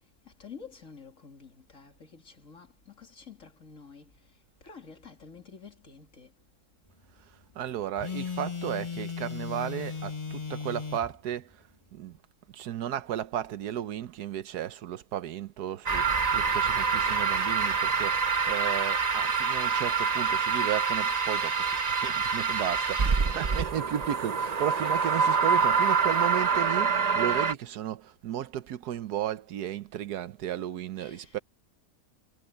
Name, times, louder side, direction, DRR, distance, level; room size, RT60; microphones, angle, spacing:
voice 1, 0.0-6.3 22.6-24.0 31.0-31.4, left 5 dB, 55° left, 3.2 m, -50 dB
voice 2, 7.2-12.2 12.5-31.4, right 11 dB, 85° right, 1.4 m, -34 dB
Telephone, 8.0-11.1, left 6 dB, 20° left, 1.8 m, -36 dB
sound 1, 15.9-27.5, right 5 dB, 35° right, 0.7 m, -26 dB
omnidirectional pair, 1.6 m